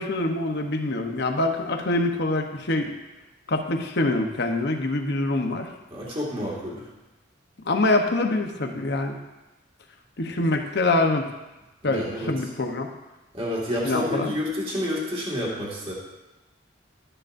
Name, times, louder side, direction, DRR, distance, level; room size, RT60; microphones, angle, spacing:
voice 1, 0.0-2.9 3.5-5.7 7.6-9.2 10.2-11.3 11.8-12.9 13.8-14.3, left 2 dB, 55° left, 4 dB, 1.0 m, -25 dB
voice 2, 5.9-6.9 11.8-12.4 13.3-15.9, left 1 dB, 30° right, -5 dB, 2.1 m, -29 dB
12.0 x 10.0 x 2.6 m, 1.1 s
head